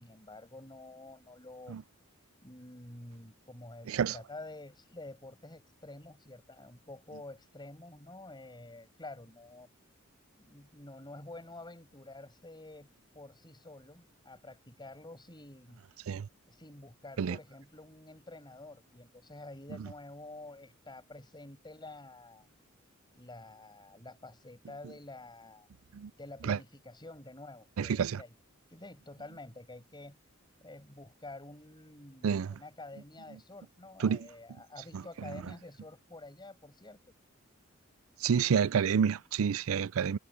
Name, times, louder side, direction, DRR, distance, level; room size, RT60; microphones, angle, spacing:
voice 1, 0.0-1.8 2.4-9.7 10.4-12.9 13.1-15.8 16.5-22.5 23.1-25.7 26.2-28.4 28.7-30.2 30.6-37.1, left 2 dB, 20° left, 6.7 m, -49 dB
voice 2, 27.8-28.2 32.2-32.5 34.0-34.2 38.2-40.2, right 7 dB, 75° right, 0.4 m, -28 dB
head